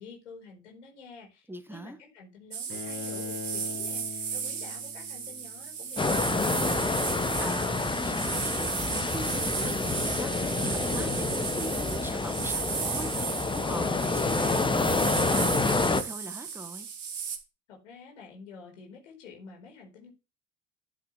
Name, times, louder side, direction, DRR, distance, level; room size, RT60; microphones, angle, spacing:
voice 1, 0.0-6.9 17.7-20.1, left 5 dB, 70° left, 4.7 m, -49 dB
voice 2, 1.5-2.0 7.4-16.9, right 1 dB, 5° right, 1.5 m, -41 dB
sound 1, 2.5-17.4, right 7 dB, 75° right, 2.4 m, -35 dB
Bowed string instrument, 2.7-5.8, left 6 dB, 30° left, 2.1 m, -41 dB
sound 2, 6.0-16.0, left 3 dB, 15° left, 1.3 m, -28 dB
12.5 x 9.9 x 3.4 m
figure-of-eight pair, 65°, 37 cm